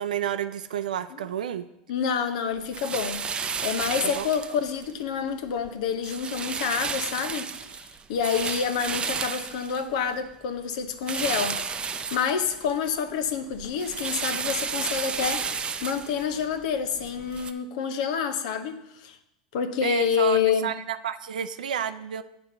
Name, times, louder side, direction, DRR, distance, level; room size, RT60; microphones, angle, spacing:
voice 1, 0.0-1.7 4.0-4.3 19.8-22.2, right 9 dB, 85° right, 11 dB, 0.4 m, -30 dB
voice 2, 1.9-3.2 3.6-7.5 8.1-11.6 12.1-19.2 19.5-20.7, left 7 dB, 70° left, 9 dB, 0.8 m, -28 dB
sound 1, 2.7-4.9 5.3-5.7 6.0-10.3 11.0-12.9 13.2-17.5, right 6 dB, 25° right, 0.5 m, -32 dB
8.2 x 4.3 x 6.6 m, 0.87 s
hypercardioid pair, 95°, 4 cm